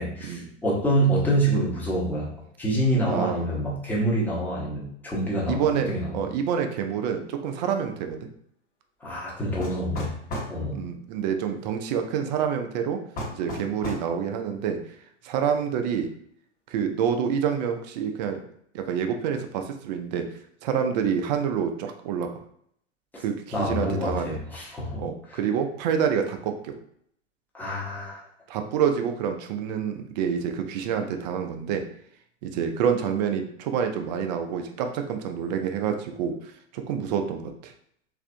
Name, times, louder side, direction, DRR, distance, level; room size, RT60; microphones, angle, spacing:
voice 1, 0.0-2.3 2.6-6.2 9.0-10.1 10.5-10.8 23.5-25.4 27.5-28.2, right 1 dB, 5° left, -5 dB, 0.8 m, -26 dB
voice 2, 3.1-3.4 5.5-5.9 6.1-8.2 10.7-13.0 13.4-14.8 15.2-16.1 16.7-18.4 18.7-20.3 20.6-22.3 23.2-24.4 25.0-26.8 28.5-31.8 32.4-37.7, right 7 dB, 40° right, 5 dB, 0.4 m, -27 dB
sound 1, 9.6-10.6 13.2-14.1, equal, 25° left, 1.1 m, -33 dB
3.3 x 2.6 x 2.5 m, 0.67 s
figure-of-eight pair, 100°, 36 cm